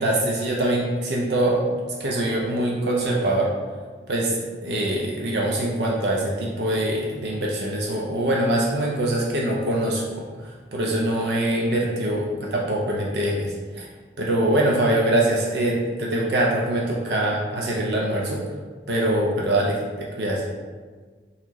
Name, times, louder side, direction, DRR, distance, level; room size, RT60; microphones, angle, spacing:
voice 1, 0.0-1.6 2.0-3.5 4.1-4.4 4.6-10.3 10.7-13.9 14.2-18.4 18.9-20.4, right 1 dB, 65° right, -2 dB, 0.5 m, -23 dB
4.0 x 2.8 x 3.0 m, 1.5 s
head